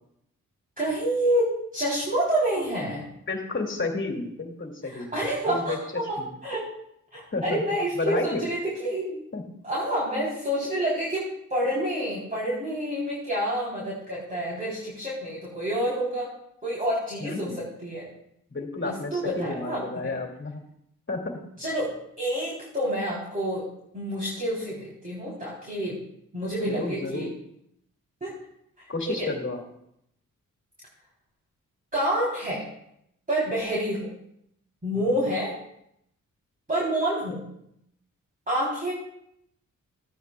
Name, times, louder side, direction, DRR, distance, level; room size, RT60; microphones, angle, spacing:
voice 1, 0.8-3.1 4.8-6.7 7.1-9.2 9.6-11.2 11.5-16.3 16.6-17.5 17.8-18.1 18.8-20.1 21.6-23.6 23.9-26.0 26.3-27.3 28.2-28.3 28.8-29.3 31.9-32.6 33.3-34.1 34.8-35.5 36.7-37.4 38.5-38.9, right 1 dB, 25° right, -7 dB, 3.6 m, -28 dB
voice 2, 3.3-5.1 5.5-5.8 6.2-6.3 7.3-7.6 8.0-8.5 9.3-9.4 17.2-17.6 18.5-20.6 21.1-21.4 26.7-27.3 28.9-29.6 35.1-35.4, left 3 dB, 35° left, 1 dB, 2.4 m, -31 dB
14.5 x 9.3 x 2.4 m, 0.75 s
cardioid pair, 65°, 33 cm